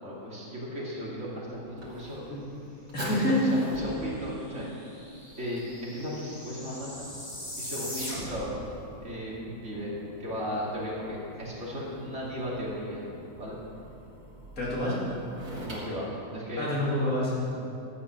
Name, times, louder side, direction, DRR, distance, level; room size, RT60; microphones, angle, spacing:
voice 1, 0.0-2.2 3.0-4.7 5.4-7.1 7.6-8.5 9.0-9.9 10.2-13.0 13.4-13.6 15.6-16.7, equal, 50° right, -6 dB, 2.9 m, -35 dB
Fire, 0.9-17.1, right 1 dB, 75° right, 3.3 m, -48 dB
voice 2, 2.9-3.4 14.6-15.0 16.6-17.6, left 1 dB, 65° left, -7 dB, 3.3 m, -27 dB
sound 1, 4.1-4.2 4.4-8.6, equal, 40° left, 3.3 m, -40 dB
13.0 x 8.7 x 6.1 m, 2.7 s
omnidirectional pair, 1.6 m